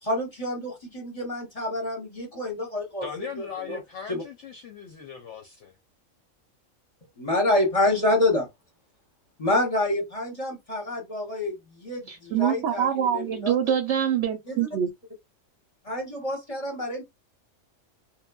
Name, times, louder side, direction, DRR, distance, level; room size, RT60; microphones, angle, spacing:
voice 1, 0.0-3.1 3.4-3.8 4.1-4.2 7.2-8.5 9.4-12.9 13.1-13.6 14.5-14.7 15.8-17.0, left 1 dB, 30° left, 0.8 m, -27 dB
voice 2, 3.0-5.8, left 6 dB, 65° left, 0.8 m, -38 dB
voice 3, 12.1-14.9, right 9 dB, 65° right, 0.8 m, -25 dB
3.0 x 2.2 x 2.2 m
omnidirectional pair, 1.4 m